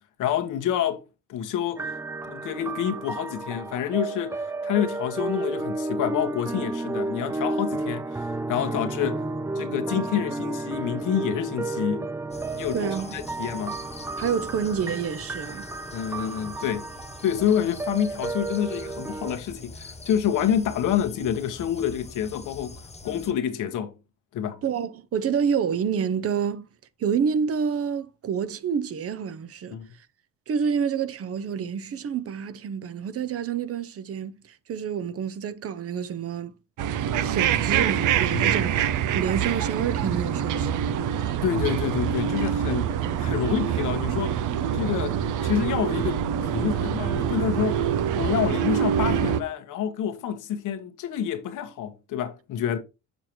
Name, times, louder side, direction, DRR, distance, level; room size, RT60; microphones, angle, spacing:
voice 1, 0.2-1.0 1.3-1.9 2.3-9.2 9.5-12.1 12.5-13.8 15.9-16.9 17.2-22.7 23.0-23.9 24.3-24.6 29.7-29.9 38.3-38.5 41.4-44.4 44.7-46.2 46.5-47.9 48.1-52.8, left 9 dB, 85° left, 1.2 m, -28 dB
sound 1, 1.8-19.4, right 2 dB, 10° right, 0.3 m, -32 dB
sound 2, 12.3-23.3, left 2 dB, 20° left, 1.2 m, -44 dB
voice 2, 12.7-13.1 14.2-15.7 24.6-26.7 27.0-29.8 30.5-36.5 37.1-38.7 39.1-40.8, right 7 dB, 50° right, 0.7 m, -28 dB
sound 3, 36.8-49.4, right 9 dB, 85° right, 0.7 m, -25 dB
6.7 x 6.2 x 3.0 m
cardioid pair, 90°, 30 cm